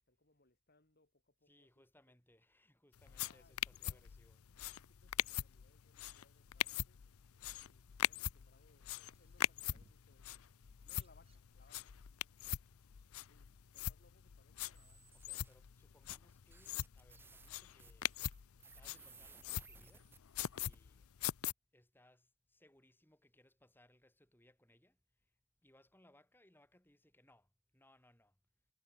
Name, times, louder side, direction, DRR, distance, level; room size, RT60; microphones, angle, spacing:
voice 1, 0.1-1.8 3.0-3.6 3.9-4.1 4.6-7.0 7.6-10.4 10.8-12.0 13.2-15.2, left 2 dB, 45° left, 3.1 m, -71 dB
voice 2, 1.4-4.4 15.1-18.1 18.6-20.1 20.5-21.1 21.7-25.3 25.6-28.4, left 1 dB, 10° left, 4.8 m, -69 dB
sound 1, 3.0-21.5, left 11 dB, 85° left, 0.6 m, -42 dB
sound 2, 9.1-10.2 10.7-12.0 13.1-13.2, right 1 dB, 25° right, 5.4 m, -72 dB
sound 3, 14.7-15.5 16.1-16.2 16.5-20.7, right 5 dB, 10° right, 0.5 m, -60 dB
head